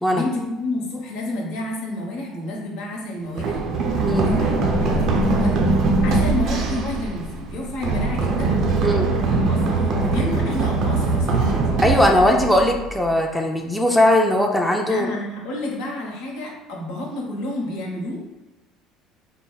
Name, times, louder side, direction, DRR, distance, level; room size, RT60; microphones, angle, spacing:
voice 1, 0.1-3.6 4.1-8.5 9.5-11.6 14.9-18.2, left 1 dB, 80° left, -2 dB, 1.1 m, -30 dB
Run, 3.4-13.1, right 3 dB, 60° right, 0.6 m, -21 dB
voice 2, 11.8-15.1, left 1 dB, 5° left, 1 dB, 0.5 m, -19 dB
3.9 x 2.1 x 3.9 m, 1.1 s
supercardioid pair, 80°, 0 cm